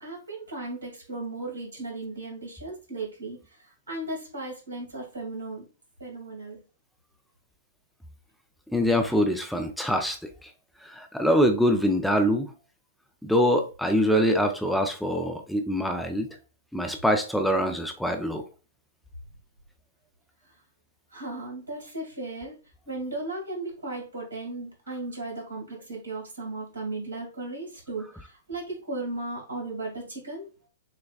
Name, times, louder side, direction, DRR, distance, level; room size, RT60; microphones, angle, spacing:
voice 1, 0.0-5.6 6.0-6.6 20.4-20.5 21.1-22.5 22.9-30.5, right 2 dB, 80° right, -1 dB, 2.0 m, -36 dB
voice 2, 8.7-10.5 10.8-12.5 13.2-16.3 16.7-18.4, equal, ahead, 4 dB, 0.5 m, -24 dB
6.4 x 2.3 x 2.4 m, 0.35 s
figure-of-eight pair, 110°, 0 cm